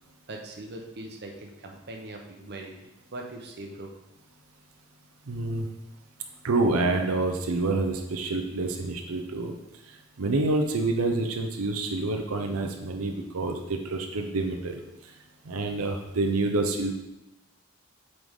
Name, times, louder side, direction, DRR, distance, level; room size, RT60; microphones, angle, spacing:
voice 1, 0.3-2.7 3.1-3.9, right 2 dB, 50° right, 1 dB, 0.8 m, -40 dB
voice 2, 5.3-5.7 6.4-9.5 10.2-15.1 15.5-16.9, right 2 dB, 90° right, 3 dB, 0.7 m, -27 dB
7.9 x 4.0 x 3.6 m, 0.94 s
head